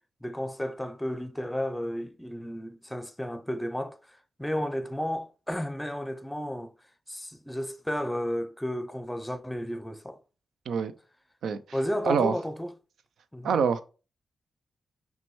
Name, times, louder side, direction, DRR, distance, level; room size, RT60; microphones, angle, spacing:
voice 1, 0.2-6.7 7.1-10.2 11.7-12.7 13.3-13.6, equal, 10° left, 0.6 m, -33 dB
voice 2, 13.4-13.8, right 6 dB, 80° right, 0.4 m, -25 dB
5.8 x 2.2 x 3.1 m
supercardioid pair, 40°, 0 cm